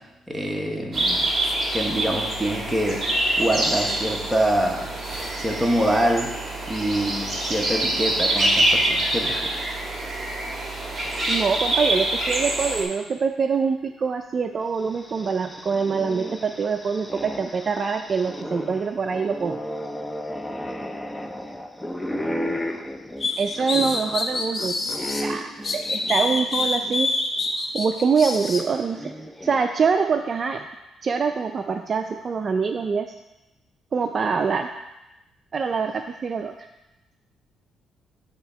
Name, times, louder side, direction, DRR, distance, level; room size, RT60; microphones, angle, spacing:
voice 1, 0.3-3.0 3.4-4.9 5.4-6.3 6.7-9.4 23.7-23.9, right 1 dB, 10° right, 0 dB, 1.2 m, -25 dB
sound 1, 0.9-12.8, right 1 dB, 25° right, 1.7 m, -25 dB
voice 2, 11.3-19.6 23.4-27.1 27.7-29.1 29.4-30.7 31.0-33.2 33.9-34.7 35.5-36.5, right 5 dB, 45° right, 6 dB, 0.3 m, -24 dB
sound 2, 14.7-27.0 27.4-27.5 28.6-29.9, equal, 10° left, 0.5 m, -34 dB
sound 3, 23.2-25.2 25.6-28.6, left 3 dB, 40° left, 0.8 m, -26 dB
9.5 x 3.5 x 4.4 m, 0.97 s
cardioid pair, 90°, 0 cm